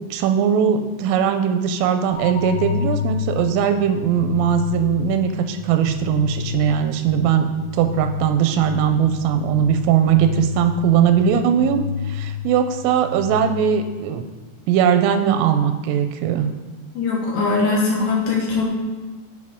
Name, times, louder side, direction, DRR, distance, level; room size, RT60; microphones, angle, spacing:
voice 1, 0.0-7.5 7.8-14.2 14.7-16.5, right 8 dB, 90° right, 7 dB, 3.2 m, -19 dB
sound 1, 2.1-14.1, left 7 dB, 90° left, 3.3 m, -30 dB
voice 2, 16.9-18.7, left 4 dB, 70° left, -3 dB, 3.2 m, -21 dB
9.5 x 4.4 x 3.6 m, 1.3 s
omnidirectional pair, 5.6 m